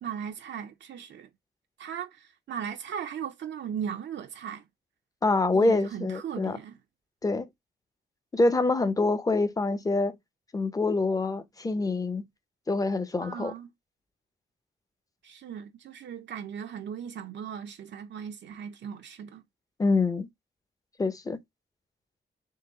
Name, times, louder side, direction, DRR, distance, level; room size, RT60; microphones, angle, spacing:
voice 1, 0.0-1.3 1.8-4.6 5.5-6.8 13.2-13.7 15.2-19.4, right 8 dB, 75° right, 0.5 m, -37 dB
voice 2, 5.2-6.6 7.2-7.5 8.3-10.2 10.5-12.3 12.7-13.5 19.8-20.3 21.0-21.4, left 3 dB, 20° left, 0.5 m, -25 dB
3.8 x 3.0 x 3.8 m
wide cardioid pair, 160°, 18 cm